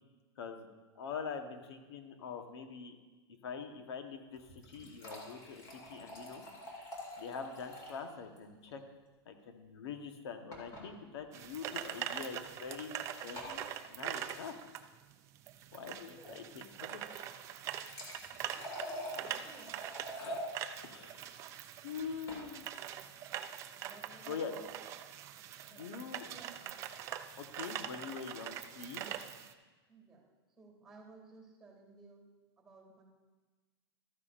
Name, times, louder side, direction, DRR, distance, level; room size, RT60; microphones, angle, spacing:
voice 1, 0.4-0.7 0.9-3.0 3.4-6.4 7.2-8.8 9.3-14.5 15.7-17.3 20.1-20.4 20.8-21.3 21.8-22.6 24.3-24.5 25.7-26.3 27.4-29.1, left 6 dB, 70° left, 6 dB, 1.2 m, -44 dB
sound 1, 4.3-8.1 8.4-8.5 8.7-8.8 10.5-10.9 11.8-12.0 13.4-13.6 17.4-20.5 22.0-22.4, equal, 25° left, 2.2 m, -45 dB
sound 2, 11.3-29.5, right 10 dB, 20° right, 0.3 m, -43 dB
voice 2, 18.2-19.8 23.7-24.7 25.7-26.7 29.9-30.3 30.6-32.2 32.6-33.0, right 4 dB, 5° right, 0 dB, 2.3 m, -56 dB
13.0 x 9.7 x 2.5 m, 1.3 s
supercardioid pair, 160°, 14 cm